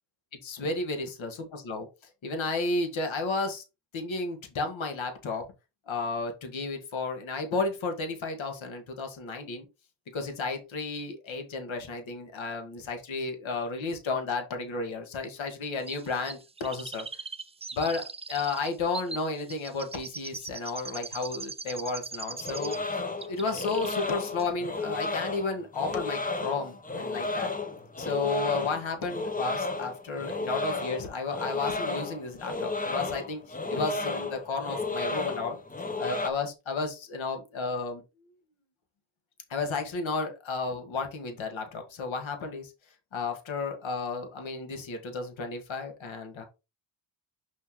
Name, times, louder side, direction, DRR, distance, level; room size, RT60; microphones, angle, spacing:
voice 1, 0.4-1.9 2.2-3.6 3.9-5.5 5.9-9.7 10.1-17.1 17.7-27.5 28.0-35.6 36.0-38.0 39.5-42.7 43.1-46.4, left 3 dB, 70° left, 5 dB, 2.0 m, -33 dB
Chirp tweet, 15.9-22.9 23.2-24.1 24.4-24.5, right 4 dB, 15° right, 0.3 m, -41 dB
sound 1, 22.4-36.3, left 3 dB, 15° left, 0.9 m, -33 dB
6.2 x 5.6 x 3.1 m, 0.27 s
cardioid pair, 90°, 49 cm